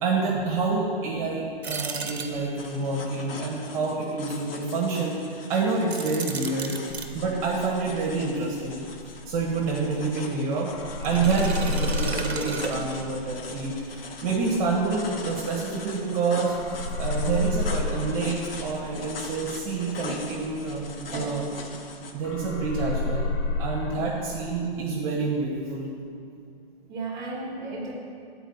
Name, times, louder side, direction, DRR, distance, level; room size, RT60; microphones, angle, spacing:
voice 1, 0.0-6.7 7.1-8.9 9.3-16.5 17.0-21.4 22.1-23.3 23.6-25.9, right 4 dB, 35° right, -3 dB, 1.4 m, -28 dB
sound 1, 1.6-2.8 5.8-7.1 11.0-13.3, right 4 dB, 85° right, 0.9 m, -34 dB
sound 2, 2.6-22.1, left 4 dB, 65° left, 1.0 m, -41 dB
sound 3, 6.9-10.4 10.7-16.2 16.5-21.9 22.2-24.6, left 3 dB, 25° left, 0.4 m, -32 dB
voice 2, 21.1-21.4 23.9-24.1 26.9-27.9, right 2 dB, 15° right, -2 dB, 1.6 m, -35 dB
9.0 x 4.6 x 7.0 m, 2.3 s
hypercardioid pair, 140°, 31 cm